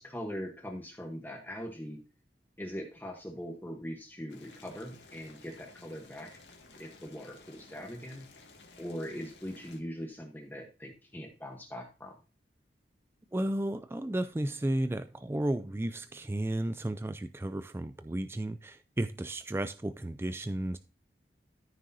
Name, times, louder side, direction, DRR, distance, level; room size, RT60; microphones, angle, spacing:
voice 1, 0.0-2.0 2.6-6.3 6.8-8.3 8.8-12.2, equal, 10° left, 2 dB, 1.1 m, -41 dB
Boiling, 4.3-9.8, left 3 dB, 85° left, 2.0 m, -55 dB
voice 2, 13.3-20.8, right 1 dB, 15° right, 11 dB, 0.3 m, -33 dB
13.5 x 6.3 x 2.7 m, 0.33 s
head